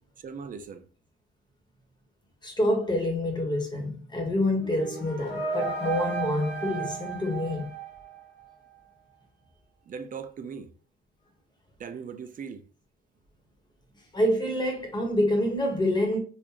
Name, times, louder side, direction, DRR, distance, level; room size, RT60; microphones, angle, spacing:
voice 1, 0.2-0.9 9.9-10.7 11.8-12.7, right 6 dB, 45° right, 0.5 m, -39 dB
voice 2, 2.4-7.7 14.1-16.2, left 1 dB, 20° left, 1.3 m, -27 dB
sound 1, 4.5-8.5, right 5 dB, 60° left, 1.3 m, -34 dB
3.9 x 2.5 x 2.9 m
cardioid pair, 90°, 20 cm